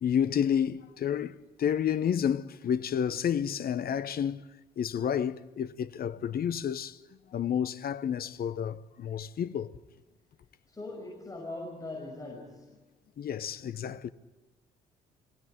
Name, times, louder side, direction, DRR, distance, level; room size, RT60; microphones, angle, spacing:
voice 1, 0.0-4.5 4.8-7.0 7.3-9.7 13.2-14.1, left 8 dB, 50° left, 0.9 m, -30 dB
voice 2, 10.7-12.7, left 2 dB, 15° left, 6.5 m, -41 dB
24.5 x 17.0 x 9.8 m
hypercardioid pair, 45°, 20 cm